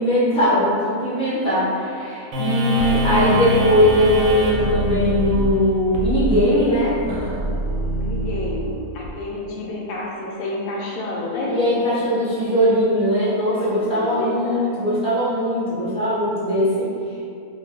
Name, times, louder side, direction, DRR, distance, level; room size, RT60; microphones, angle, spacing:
voice 1, 0.0-7.0 11.5-16.9, equal, 10° left, -10 dB, 0.4 m, -20 dB
voice 2, 1.3-1.9 2.7-3.0 8.0-11.6 13.4-14.7, left 2 dB, 80° left, -3 dB, 1.0 m, -30 dB
sound 1, 2.3-9.1, equal, 75° right, 1.0 m, -24 dB
2.5 x 2.2 x 3.5 m, 2.4 s
omnidirectional pair, 1.5 m